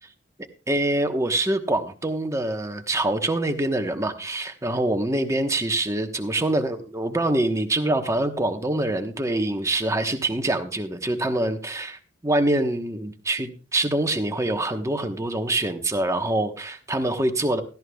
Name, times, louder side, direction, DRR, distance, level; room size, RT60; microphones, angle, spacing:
voice 1, 0.7-17.6, right 1 dB, 15° right, 6 dB, 1.1 m, -25 dB
16.5 x 13.5 x 2.3 m, 0.36 s
head